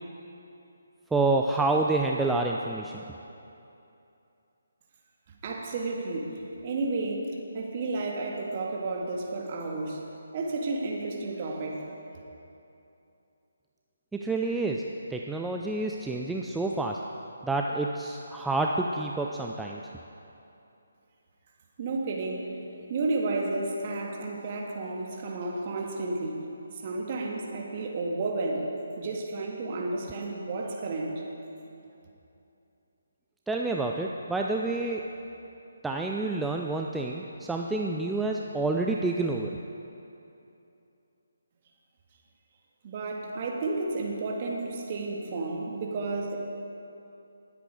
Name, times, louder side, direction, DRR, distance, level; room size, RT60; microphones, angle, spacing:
voice 1, 1.1-3.0 14.1-17.0 17.4-19.8 33.5-35.1 35.8-39.5, right 2 dB, 5° right, 0 dB, 0.4 m, -28 dB
voice 2, 5.4-10.0 10.3-11.8 21.8-22.6 22.9-26.5 26.8-28.7 29.0-31.3 42.8-46.4, right 3 dB, 35° right, 0 dB, 1.9 m, -32 dB
20.0 x 8.4 x 4.9 m, 2.8 s
figure-of-eight pair, 145°, 0 cm